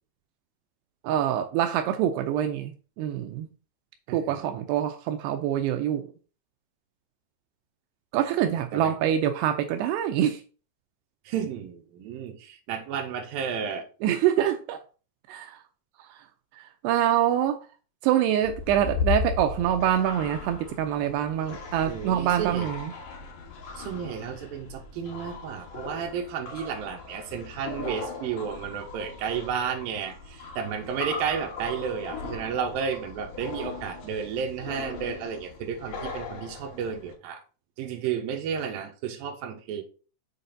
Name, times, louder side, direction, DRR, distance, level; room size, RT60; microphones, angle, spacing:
voice 1, 1.0-2.7 3.0-3.5 4.1-6.1 8.1-10.4 14.0-14.8 15.3-15.6 16.6-17.6 18.0-22.9, right 10 dB, 85° right, 2.4 m, -25 dB
voice 2, 4.1-4.5 8.7-8.9 11.3-13.9 21.8-22.7 23.8-37.4 37.8-39.8, right 7 dB, 70° right, 2.4 m, -32 dB
sound 1, 18.4-37.1, left 5 dB, 60° left, 2.5 m, -37 dB
6.8 x 4.1 x 5.2 m
omnidirectional pair, 5.4 m